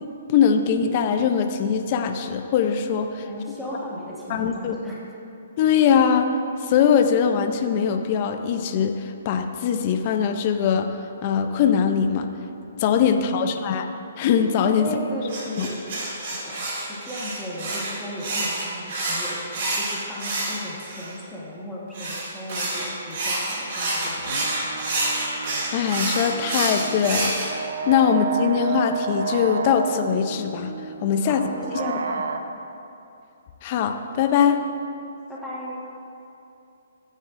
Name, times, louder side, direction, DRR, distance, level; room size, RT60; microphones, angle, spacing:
voice 1, 0.0-3.3 4.3-4.7 5.6-6.3 6.6-10.9 11.2-12.3 12.8-13.9 14.2-14.9 15.6-15.7 25.7-30.7 31.0-31.5 31.7-31.8 33.6-34.6, left 7 dB, 35° left, 6 dB, 0.5 m, -21 dB
voice 2, 3.3-5.0 14.8-15.8 16.1-24.5 31.2-32.2 35.3-36.0, equal, ahead, -8 dB, 1.4 m, -36 dB
sound 1, 15.3-21.1 21.9-27.5, right 2 dB, 45° right, 2.4 m, -28 dB
sound 2, 24.1-32.4, right 5 dB, 70° right, 0.6 m, -32 dB
15.0 x 9.1 x 2.5 m, 2.7 s
hypercardioid pair, 165°, 0 cm